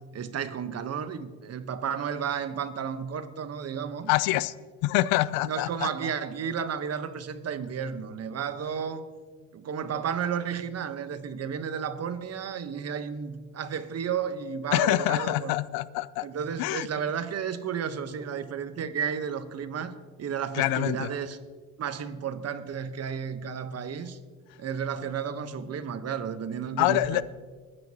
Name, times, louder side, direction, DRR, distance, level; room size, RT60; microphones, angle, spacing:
voice 1, 0.1-4.1 5.4-9.1 9.5-15.5 16.2-19.9 20.2-21.4 21.8-24.2 24.6-27.2, right 7 dB, 40° right, 1.2 m, -32 dB
voice 2, 4.1-4.5 4.8-5.9 14.7-16.3 16.6-16.9 20.5-21.1 26.8-27.2, left 16 dB, 65° left, 0.6 m, -25 dB
22.0 x 9.9 x 3.0 m
hypercardioid pair, 75°, 39 cm